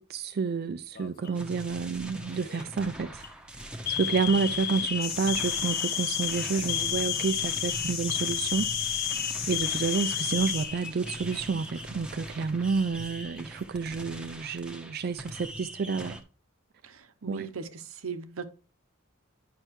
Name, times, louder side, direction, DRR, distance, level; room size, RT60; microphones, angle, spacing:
voice 1, 0.0-3.2 3.5-8.7 9.5-16.2 17.3-17.5, right 5 dB, 50° right, 0.4 m, -30 dB
Alarm, 1.0-1.5 2.3-2.6 3.1-3.3 3.9-11.4 11.7-11.8 12.7-13.4, left 10 dB, 45° left, 0.8 m, -33 dB
sound 1, 1.3-16.2, right 1 dB, 5° right, 0.9 m, -42 dB
sound 2, 5.0-10.6, left 7 dB, 70° left, 1.3 m, -34 dB
voice 2, 16.8-18.4, right 6 dB, 80° right, 0.8 m, -38 dB
9.8 x 5.6 x 3.1 m
head